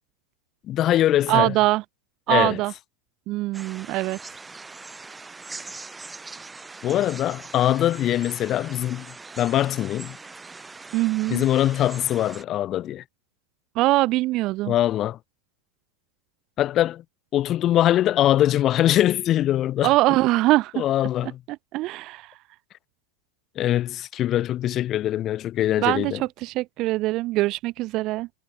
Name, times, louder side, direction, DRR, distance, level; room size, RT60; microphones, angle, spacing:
voice 1, 0.7-1.6 2.3-2.6 6.8-10.2 11.3-13.0 14.7-15.2 16.6-17.0 17.3-19.9 20.7-21.4 23.6-26.2, left 12 dB, 30° left, 1.0 m, -22 dB
voice 2, 1.3-1.8 2.3-2.7 3.3-4.2 10.9-11.4 13.8-14.7 19.8-20.8 21.7-22.2 25.8-28.3, right 18 dB, 40° right, 0.4 m, -22 dB
sound 1, 3.5-12.4, right 3 dB, 10° right, 5.0 m, -42 dB
figure-of-eight pair, 90°, 0 cm